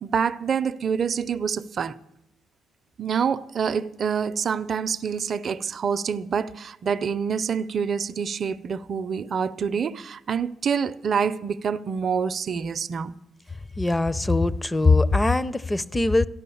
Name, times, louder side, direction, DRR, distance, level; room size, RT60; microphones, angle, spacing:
voice 1, 0.0-2.0 3.0-13.1, right 6 dB, 50° right, 0.6 m, -26 dB
voice 2, 13.8-16.3, left 3 dB, 15° left, 0.5 m, -21 dB
14.0 x 10.5 x 7.0 m
cardioid pair, 90°, 0 cm